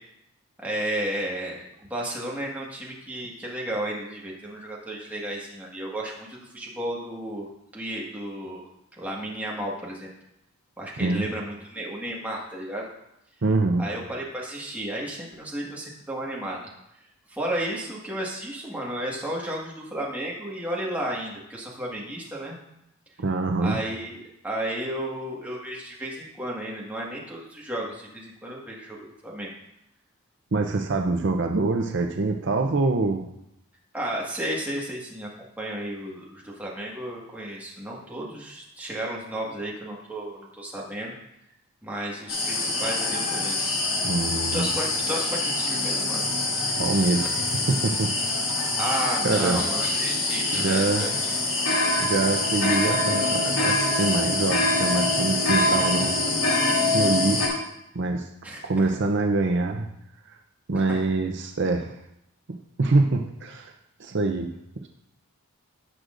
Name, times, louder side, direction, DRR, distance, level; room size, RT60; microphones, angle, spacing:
voice 1, 0.6-8.6 9.0-10.1 10.8-12.9 13.8-16.7 17.3-22.6 23.6-24.2 24.4-29.5 33.9-35.3 35.6-41.1 41.8-43.8 44.5-46.3 47.2-47.3 48.8-51.4 58.4-58.9 60.7-61.0, right 1 dB, 5° right, -4 dB, 1.6 m, -33 dB
voice 2, 13.4-13.9 23.2-23.8 30.5-33.3 44.0-44.7 46.8-48.1 49.2-49.6 50.5-51.1 52.0-56.1 56.9-57.6 57.9-58.3 58.6-59.9 60.3-60.4 60.7-61.9 62.5-63.7 64.0-64.5 64.8-64.9, right 3 dB, 50° right, 4 dB, 0.6 m, -25 dB
sound 1, 42.3-57.5, left 2 dB, 70° left, 3.0 m, -25 dB
17.0 x 6.3 x 2.6 m, 0.81 s
head